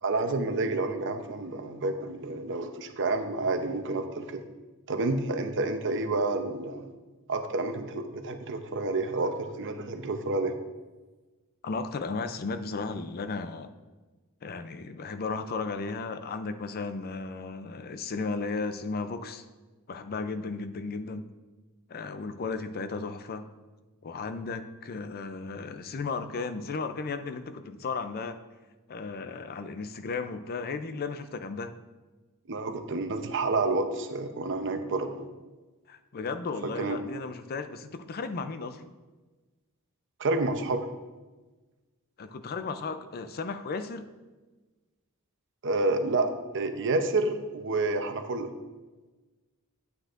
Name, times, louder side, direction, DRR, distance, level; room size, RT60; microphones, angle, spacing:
voice 1, 0.0-4.4 4.9-6.9 7.3-10.5 32.5-35.3 36.6-37.0 40.2-40.9 45.6-46.3 46.5-48.5, right 2 dB, 55° right, 7 dB, 0.7 m, -29 dB
voice 2, 11.6-13.7 14.4-19.4 19.9-21.3 21.9-23.5 24.0-28.4 28.9-31.7 35.9-38.9 42.2-44.1, left 4 dB, 45° left, 10 dB, 0.5 m, -35 dB
9.6 x 9.0 x 2.5 m, 1.2 s
head